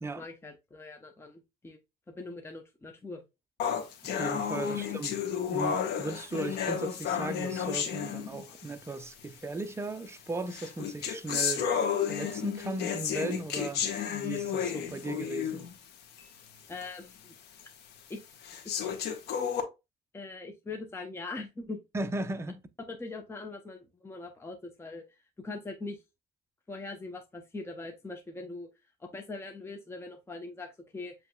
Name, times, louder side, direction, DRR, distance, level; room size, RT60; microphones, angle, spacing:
voice 1, 0.1-1.8 2.1-3.2 4.6-4.8 16.7-17.3 18.1-18.2 18.6-18.7 20.1-21.8 22.9-25.0 25.4-26.0 26.7-28.7 29.0-31.1, left 3 dB, 15° left, 0.8 m, -41 dB
sound 1, 3.6-8.7 9.6-9.7 10.5-15.8 16.2-16.3 16.8-16.9 17.6-17.7 18.4-19.6, left 8 dB, 80° left, 1.2 m, -32 dB
voice 2, 4.0-11.7 12.1-15.7 21.9-22.6, right 2 dB, 15° right, 0.6 m, -37 dB
7.6 x 2.9 x 2.3 m
cardioid pair, 110°, 17 cm